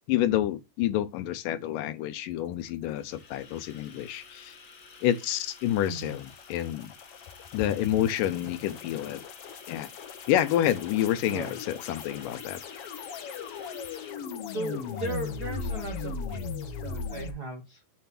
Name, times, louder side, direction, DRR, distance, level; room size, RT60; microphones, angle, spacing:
voice 1, 0.1-4.6 5.0-6.9 7.5-9.2 9.7-9.9 10.3-12.6, left 12 dB, 85° left, 2.5 m, -28 dB
sound 1, 2.7-16.1, left 4 dB, 40° left, 2.4 m, -51 dB
sound 2, 5.1-17.3, left 5 dB, 65° left, 1.5 m, -38 dB
voice 2, 5.8-6.2 11.2-11.6 14.5-17.8, right 2 dB, 80° right, 0.8 m, -37 dB
7.2 x 3.4 x 5.9 m
omnidirectional pair, 3.8 m